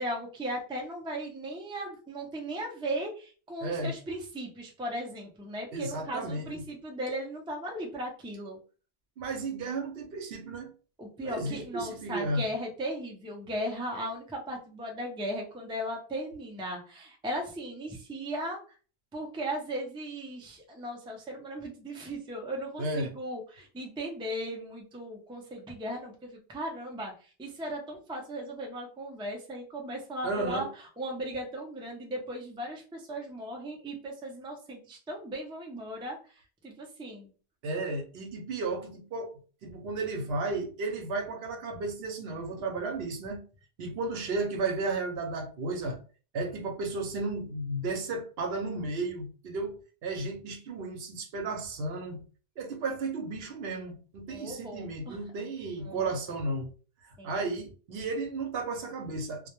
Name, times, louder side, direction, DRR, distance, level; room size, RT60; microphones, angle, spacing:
voice 1, 0.0-8.6 11.0-18.6 19.1-27.1 27.4-30.7 31.0-36.2 36.6-37.3 54.3-55.2 55.8-56.0 57.2-57.4, right 1 dB, 10° right, 0.3 m, -37 dB
voice 2, 3.6-3.9 5.7-6.6 9.2-10.7 11.2-12.4 22.8-23.1 30.2-30.7 37.6-39.3 39.6-43.4 43.8-46.0 46.3-49.7 50.0-52.2 52.6-56.7 57.2-59.5, right 3 dB, 75° right, 0.9 m, -33 dB
2.1 x 2.1 x 2.9 m
omnidirectional pair, 1.1 m